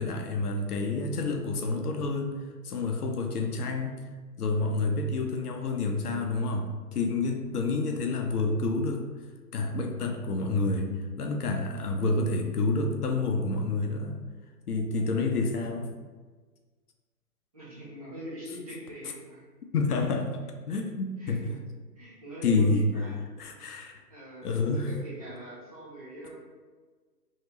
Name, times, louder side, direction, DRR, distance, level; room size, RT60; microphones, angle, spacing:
voice 1, 0.0-2.4 2.6-4.0 4.4-9.0 9.5-10.9 11.2-14.2 14.7-15.9 19.7-20.3 20.7-21.4 22.4-22.9 23.4-23.9 24.4-24.9, left 3 dB, 65° left, 3 dB, 0.6 m, -28 dB
voice 2, 17.5-19.4 21.2-21.5 22.0-23.2 24.1-26.4, equal, 25° right, -8 dB, 0.7 m, -42 dB
3.1 x 2.8 x 2.8 m, 1.4 s
hypercardioid pair, 150°, 49 cm